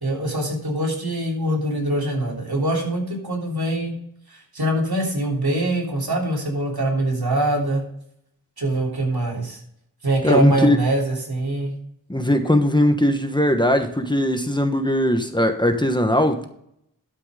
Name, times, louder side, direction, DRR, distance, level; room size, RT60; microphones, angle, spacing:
voice 1, 0.0-3.9 4.3-7.8 8.6-9.6 10.0-11.7, right 1 dB, 85° right, -1 dB, 3.4 m, -23 dB
voice 2, 10.2-10.8 12.1-16.4, left 1 dB, 10° left, 6 dB, 1.2 m, -19 dB
12.5 x 5.7 x 5.0 m, 0.71 s
wide cardioid pair, 70°, 36 cm